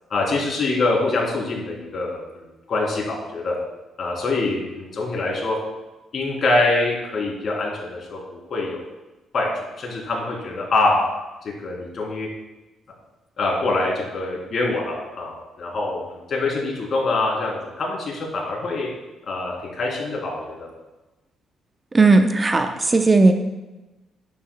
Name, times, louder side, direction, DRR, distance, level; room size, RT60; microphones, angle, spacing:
voice 1, 0.1-3.5 4.0-5.5 6.1-8.8 9.3-9.5 9.8-11.0 11.4-12.3 13.4-18.9 19.3-20.7, left 2 dB, 55° left, -2 dB, 3.2 m, -24 dB
voice 2, 21.9-23.3, right 3 dB, 25° right, 6 dB, 0.7 m, -16 dB
10.5 x 9.9 x 2.2 m, 1.1 s
cardioid pair, 90°, 0 cm